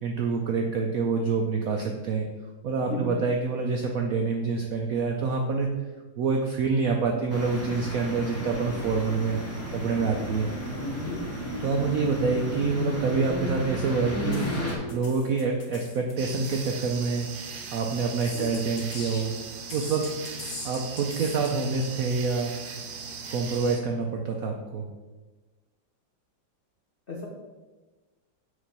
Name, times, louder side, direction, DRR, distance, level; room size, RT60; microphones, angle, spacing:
voice 1, 0.0-2.3 2.6-5.7 6.2-9.4 9.7-10.5 11.6-14.5 14.9-17.3 17.7-19.3 19.7-20.1 20.6-22.5 23.3-24.9, right 4 dB, 80° right, 2 dB, 0.7 m, -26 dB
voice 2, 2.8-3.1 10.1-10.3 10.9-11.2 18.3-18.5 27.1-27.3, left 2 dB, 85° left, -1 dB, 0.5 m, -35 dB
sound 1, 7.3-14.8, left 1 dB, 15° left, 0.5 m, -33 dB
sound 2, 14.3-17.1 18.0-19.3 19.7-21.5, left 3 dB, 55° left, 1.4 m, -42 dB
sound 3, 16.2-23.8, right 5 dB, 65° right, 1.1 m, -39 dB
6.5 x 3.1 x 5.2 m, 1.2 s
omnidirectional pair, 2.1 m